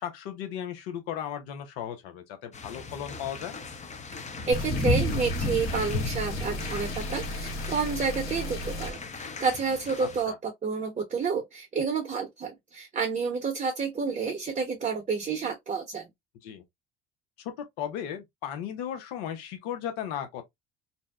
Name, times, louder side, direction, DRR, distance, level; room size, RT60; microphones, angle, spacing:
voice 1, 0.0-3.6 10.0-10.4 16.4-16.6 17.4-20.4, left 9 dB, 85° left, 0.7 m, -36 dB
sound 1, 2.5-10.2, left 2 dB, 25° left, 0.6 m, -34 dB
sound 2, 4.5-8.9, left 1 dB, 45° left, 1.1 m, -35 dB
voice 2, 4.5-16.1, right 5 dB, 25° right, 0.8 m, -30 dB
2.6 x 2.1 x 2.3 m
supercardioid pair, 85°, 30 cm